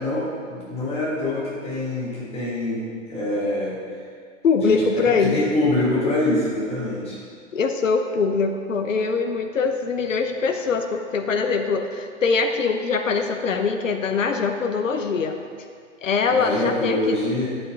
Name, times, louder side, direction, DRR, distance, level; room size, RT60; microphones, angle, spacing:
voice 1, 0.0-3.8 4.6-4.8 5.2-7.2 16.3-17.5, left 2 dB, 15° left, -8 dB, 2.7 m, -25 dB
voice 2, 4.4-5.4 7.5-15.4 16.0-17.1, left 4 dB, 75° left, 6 dB, 0.8 m, -22 dB
9.6 x 8.5 x 3.8 m, 2.1 s
figure-of-eight pair, 105°, 39 cm